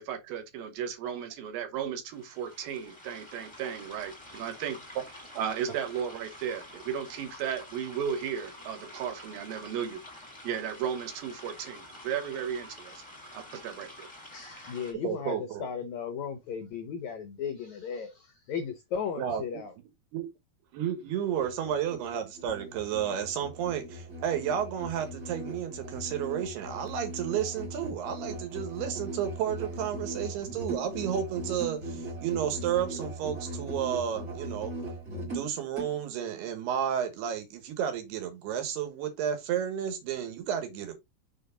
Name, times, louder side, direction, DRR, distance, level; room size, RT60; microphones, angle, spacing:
voice 1, 0.0-4.8 5.4-10.0 10.4-13.0 13.3-14.1, right 8 dB, 70° right, 2.7 m, -35 dB
sound 1, 2.1-14.9, left 1 dB, 20° left, 0.7 m, -48 dB
voice 2, 14.3-19.7, left 7 dB, 90° left, 1.6 m, -36 dB
voice 3, 15.0-15.7 19.2-19.6 20.1-20.3 20.7-34.7 35.2-40.9, right 9 dB, 90° right, 3.5 m, -32 dB
Musical instrument, 21.3-35.9, right 1 dB, 35° right, 1.1 m, -39 dB
6.5 x 4.6 x 3.8 m
omnidirectional pair, 4.5 m